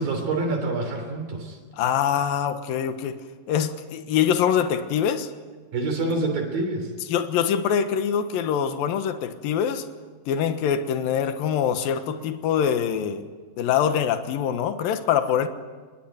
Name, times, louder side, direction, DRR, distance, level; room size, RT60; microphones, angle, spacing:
voice 1, 0.0-1.6 5.7-6.9, right 2 dB, 75° right, 3 dB, 5.2 m, -26 dB
voice 2, 1.8-3.2 3.5-5.3 7.1-9.9 10.3-13.2 13.6-15.5, left 8 dB, 80° left, 8 dB, 3.1 m, -24 dB
27.0 x 21.5 x 9.2 m, 1.4 s
omnidirectional pair, 4.1 m